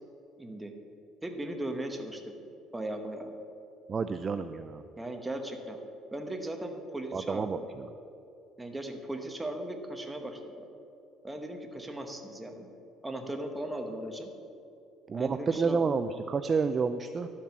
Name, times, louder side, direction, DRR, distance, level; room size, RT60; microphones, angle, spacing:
voice 1, 0.4-0.7 1.2-2.3 2.7-3.3 5.0-5.8 6.1-7.7 8.6-10.7 11.2-12.7 13.0-14.3 15.1-15.8, right 1 dB, 10° right, 4 dB, 1.0 m, -37 dB
voice 2, 3.9-4.8 7.1-7.9 15.1-17.3, right 5 dB, 25° right, 10 dB, 0.3 m, -30 dB
11.5 x 7.3 x 5.9 m, 2.8 s
cardioid pair, 140°, 0 cm